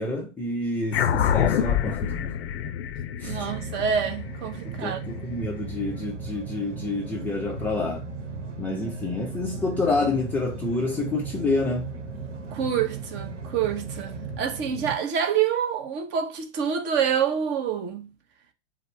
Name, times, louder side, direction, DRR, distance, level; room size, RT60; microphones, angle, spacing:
voice 1, 0.0-2.4 3.2-3.5 4.6-8.0 8.6-11.9 14.7-14.8, left 2 dB, 5° left, 0.4 m, -28 dB
sound 1, 0.9-5.7, left 9 dB, 60° left, 0.6 m, -27 dB
voice 2, 3.2-5.1 12.5-18.1, right 8 dB, 30° right, 0.7 m, -27 dB
sound 2, 3.3-15.0, right 4 dB, 80° right, 1.0 m, -36 dB
5.0 x 2.0 x 4.2 m
hypercardioid pair, 105°, 36 cm